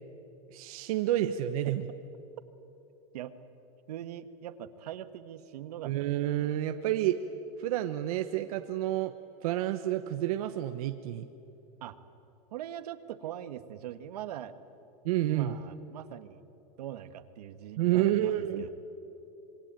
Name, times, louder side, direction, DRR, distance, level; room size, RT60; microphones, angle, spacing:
voice 1, 0.5-1.9 5.8-7.2 7.6-9.1 9.4-11.2 15.0-15.6 17.8-18.7, right 13 dB, 65° right, 7 dB, 1.1 m, -29 dB
voice 2, 3.9-6.3 11.8-12.0 12.5-14.5 15.2-16.4 16.8-18.7, right 11 dB, 85° right, 10 dB, 1.5 m, -42 dB
26.5 x 23.0 x 9.0 m, 2.9 s
supercardioid pair, 155°, 20 cm